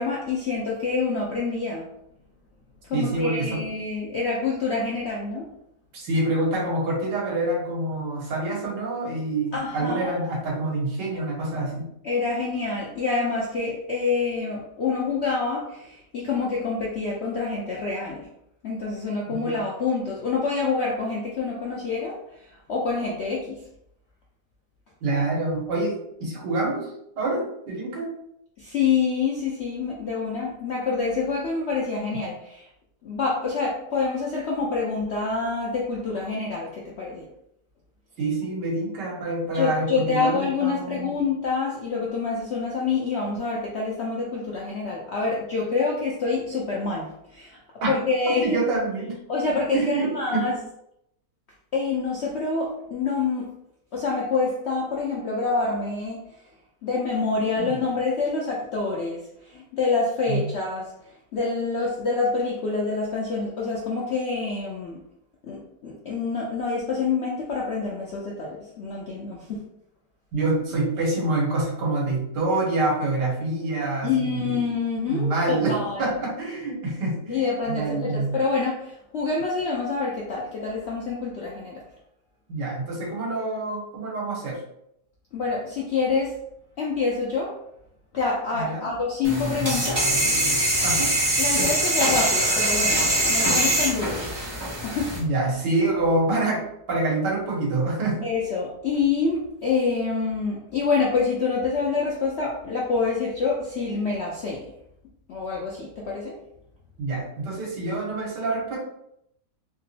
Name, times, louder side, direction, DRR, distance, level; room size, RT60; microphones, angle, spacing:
voice 1, 0.0-1.9 2.9-5.5 9.5-10.3 12.0-18.3 18.6-23.6 28.6-32.6 33.0-37.3 39.5-47.6 47.9-48.6 49.3-50.5 51.7-53.5 53.9-56.2 56.8-60.9 61.3-65.0 65.5-69.6 70.3-70.5 74.0-76.1 77.3-81.8 85.3-86.4 86.8-87.6 88.1-90.1 91.4-94.6 94.8-95.1 98.2-104.7 105.3-106.4, left 4 dB, 70° left, -3 dB, 0.6 m, -27 dB
voice 2, 2.9-3.6 5.9-11.9 19.3-19.5 25.0-26.9 27.2-28.1 38.2-41.1 47.8-47.9 48.4-49.2 49.7-50.6 57.6-57.7 60.3-60.4 70.3-74.6 75.1-78.4 82.5-84.6 88.5-88.9 90.8-91.2 95.1-98.3 107.0-108.8, right 2 dB, 80° right, -3 dB, 1.7 m, -26 dB
sound 1, 89.2-95.2, right 1 dB, 35° right, 0.4 m, -23 dB
3.6 x 2.9 x 2.7 m, 0.77 s
omnidirectional pair, 1.8 m